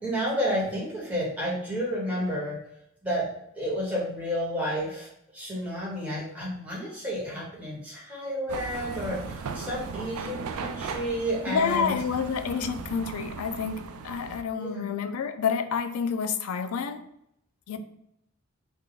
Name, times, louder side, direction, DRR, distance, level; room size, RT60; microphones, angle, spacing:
voice 1, 0.0-2.6 3.0-11.9 14.6-14.9, equal, 5° right, -7 dB, 1.3 m, -31 dB
sound 1, 8.5-14.4, right 5 dB, 80° right, 0.3 m, -37 dB
voice 2, 11.5-17.1 17.7-17.8, left 6 dB, 75° left, 9 dB, 0.4 m, -29 dB
3.4 x 2.4 x 3.9 m, 0.76 s
head